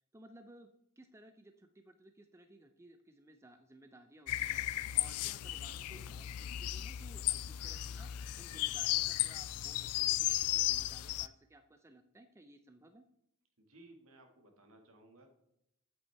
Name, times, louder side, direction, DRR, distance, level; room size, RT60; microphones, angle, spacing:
voice 1, 0.1-0.7 1.0-4.7 4.9-8.1 8.4-13.1, right 1 dB, 10° right, 7 dB, 0.5 m, -58 dB
sound 1, 4.3-11.3, left 15 dB, 80° left, 0.3 m, -35 dB
voice 2, 13.6-15.3, right 2 dB, 65° right, 4 dB, 1.8 m, -59 dB
8.4 x 8.2 x 3.4 m, 0.79 s
head